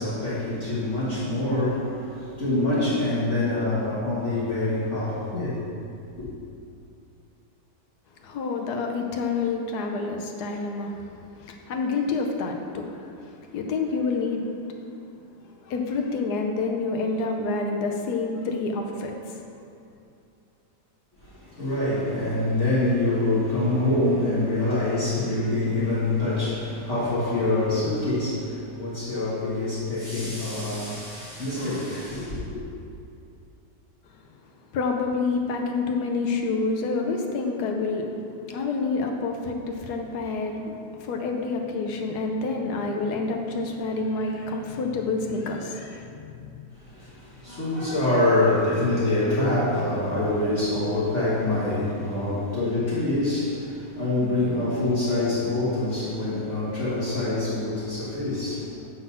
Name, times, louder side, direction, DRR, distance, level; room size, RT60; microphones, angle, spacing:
voice 1, 0.0-5.6 6.2-6.3 21.2-32.6 46.7-58.9, left 2 dB, 45° left, -10 dB, 1.7 m, -25 dB
voice 2, 8.2-14.5 15.6-19.4 34.7-38.1 38.5-46.5, left 3 dB, 70° left, 2 dB, 1.2 m, -28 dB
8.5 x 3.9 x 5.6 m, 2.6 s
omnidirectional pair, 1.8 m